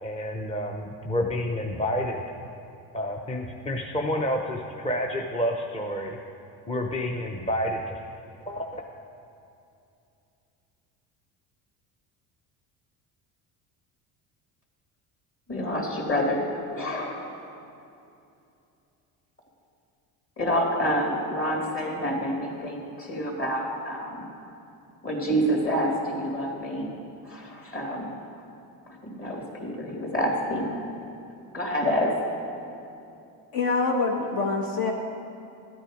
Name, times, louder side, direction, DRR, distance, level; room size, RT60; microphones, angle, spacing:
voice 1, 0.0-2.2 2.9-6.2 6.7-8.0 8.5-8.8, left 1 dB, 15° left, 1 dB, 0.7 m, -29 dB
voice 2, 15.5-16.5 16.7-17.5 20.4-24.2 25.0-26.9 27.3-28.1 29.0-30.7 31.5-32.1, equal, 35° left, -1 dB, 2.6 m, -28 dB
voice 3, 33.5-34.9, left 3 dB, 65° left, 1 dB, 1.2 m, -25 dB
13.0 x 8.8 x 5.0 m, 2.7 s
cardioid pair, 110°, 37 cm